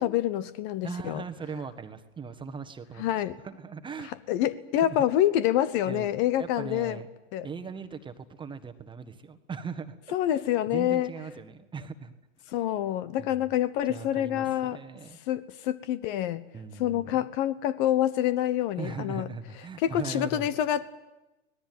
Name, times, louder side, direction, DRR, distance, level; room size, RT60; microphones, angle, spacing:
voice 1, 0.0-1.2 3.0-3.4 4.1-7.0 7.3-7.5 10.1-11.1 12.5-14.8 15.3-16.4 16.8-19.3 19.8-20.9, left 12 dB, 40° left, 16 dB, 1.1 m, -27 dB
voice 2, 0.8-3.0 3.4-4.1 4.8-5.0 5.9-6.1 6.4-7.1 7.4-10.0 10.3-10.4 10.7-12.1 13.2-13.4 13.9-15.2 16.5-17.3 18.8-20.5, right 5 dB, 10° right, 7 dB, 1.5 m, -39 dB
24.5 x 19.0 x 9.4 m, 1.0 s
hypercardioid pair, 120°, 39 cm